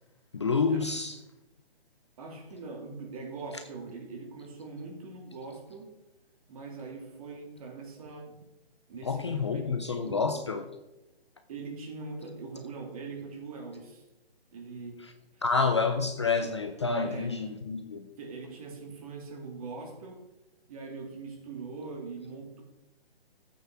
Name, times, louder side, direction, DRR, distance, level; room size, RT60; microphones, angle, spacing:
voice 1, 0.3-1.2 9.0-10.6 15.4-18.1, left 4 dB, 30° left, 0.5 m, -28 dB
voice 2, 2.2-5.9 6.5-8.5 8.9-10.5 11.5-14.0 14.5-15.1 15.3-15.4 17.0-17.4 18.2-20.3 20.7-22.6, right 4 dB, 35° right, 2.9 m, -42 dB
12.5 x 8.5 x 4.7 m
hypercardioid pair, 160°, 31 cm